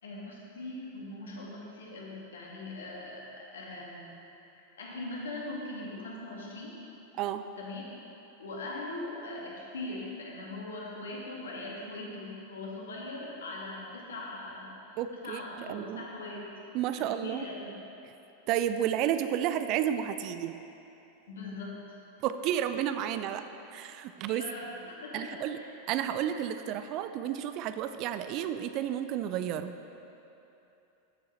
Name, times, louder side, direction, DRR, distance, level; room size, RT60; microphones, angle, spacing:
voice 1, 0.0-3.2 3.5-4.2 4.8-6.7 7.6-7.8 8.4-16.4 17.0-17.7 21.3-21.8 24.2-25.7, left 2 dB, 65° left, -3 dB, 1.7 m, -41 dB
voice 2, 15.0-16.0 16.7-17.4 18.5-20.6 22.2-23.4 23.7-24.4 25.1-25.6 25.9-29.7, right 10 dB, 40° right, 10 dB, 0.3 m, -31 dB
12.0 x 7.0 x 3.1 m, 2.9 s
figure-of-eight pair, 90°, 0 cm